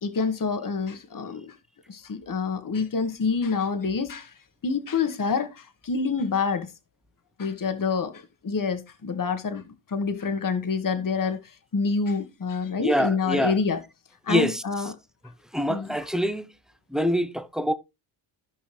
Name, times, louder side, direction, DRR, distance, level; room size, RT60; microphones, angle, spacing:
voice 1, 0.0-1.5 1.9-4.3 4.6-6.7 7.4-9.6 9.9-13.8 14.2-14.9 15.7-15.9, left 5 dB, 40° left, 1.6 m, -27 dB
voice 2, 12.8-13.6 14.3-14.6 15.5-16.5 16.9-17.7, equal, ahead, 1.0 m, -25 dB
14.5 x 5.5 x 3.3 m
cardioid pair, 75°, 49 cm